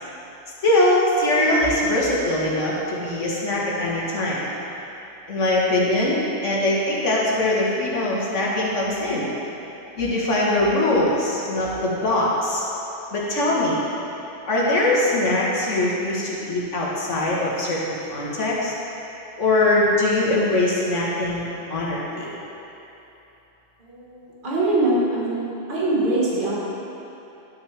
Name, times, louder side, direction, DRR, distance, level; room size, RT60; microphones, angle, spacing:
voice 1, 0.6-4.4 5.3-9.3 10.0-12.6 13.1-13.8 14.5-18.7 19.4-22.3, left 1 dB, 90° left, -5 dB, 1.7 m, -22 dB
voice 2, 23.8-25.4 25.7-26.5, right 2 dB, 45° right, -7 dB, 1.6 m, -23 dB
11.0 x 6.0 x 3.3 m, 3.0 s
omnidirectional pair, 1.2 m